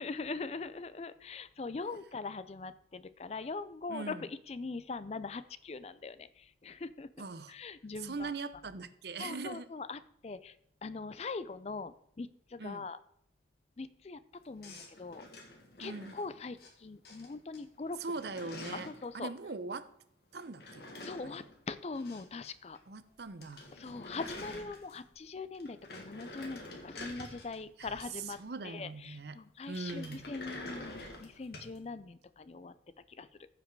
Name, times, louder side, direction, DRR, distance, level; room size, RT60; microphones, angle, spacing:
voice 1, 0.0-7.1 7.5-8.3 9.2-10.6 10.8-13.0 13.8-15.2 15.8-18.0 18.9-19.3 21.0-22.8 23.8-28.4 28.6-32.7 33.1-33.3, left 3 dB, 35° left, 14 dB, 0.4 m, -42 dB
voice 2, 3.9-4.3 7.2-7.5 8.0-9.7 12.6-12.9 15.8-16.1 18.0-18.9 19.1-19.9 20.3-20.9 21.2-21.3 22.9-23.7 27.8-29.4 29.7-30.2, right 3 dB, 65° right, 13 dB, 0.7 m, -41 dB
sound 1, 14.6-16.7 17.0-17.6 17.9-19.1 20.3-22.5 22.7-22.8 23.1-23.2 23.4-25.2 25.5-28.6 29.7-31.8, left 2 dB, 60° left, 1.8 m, -48 dB
14.5 x 5.1 x 4.6 m, 0.69 s
head